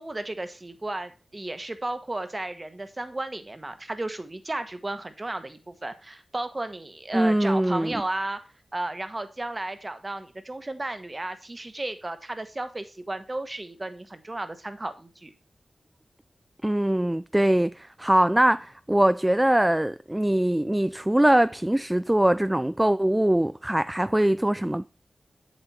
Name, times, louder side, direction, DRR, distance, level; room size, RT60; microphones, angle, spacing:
voice 1, 0.0-8.4 8.7-15.3, right 2 dB, 30° right, 1.4 m, -34 dB
voice 2, 7.1-8.0 16.6-24.9, right 1 dB, 15° right, 0.4 m, -22 dB
7.8 x 7.6 x 4.3 m
cardioid pair, 55°, 0 cm